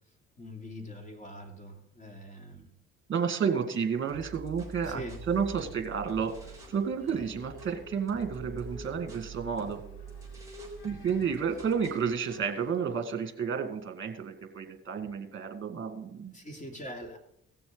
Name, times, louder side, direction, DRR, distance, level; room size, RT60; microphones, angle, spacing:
voice 1, 0.4-2.7 4.8-5.2 16.3-17.2, equal, 25° left, 2 dB, 2.7 m, -43 dB
voice 2, 3.1-5.0 5.3-6.3 6.7-9.8 10.8-16.4, right 6 dB, 40° right, 6 dB, 2.0 m, -31 dB
sound 1, 4.1-6.8 7.1-12.1, right 4 dB, 10° right, 3.5 m, -46 dB
sound 2, 6.0-12.7, left 2 dB, 70° left, 3.5 m, -50 dB
17.0 x 6.9 x 3.9 m, 0.78 s
cardioid pair, 90°, 30 cm